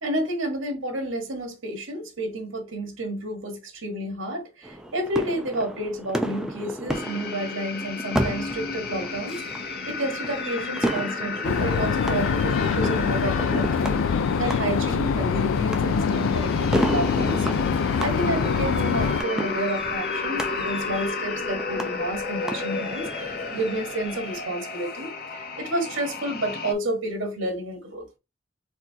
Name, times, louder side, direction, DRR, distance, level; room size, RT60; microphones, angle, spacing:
voice 1, 0.0-9.6 9.9-17.5 18.0-28.1, right 1 dB, 85° right, 1.6 m, -30 dB
sound 1, 4.6-24.4, equal, 5° right, 0.5 m, -33 dB
sound 2, 6.9-26.7, left 4 dB, 50° left, 0.9 m, -33 dB
sound 3, 11.4-19.2, left 6 dB, 90° left, 0.3 m, -24 dB
4.4 x 2.9 x 3.9 m
head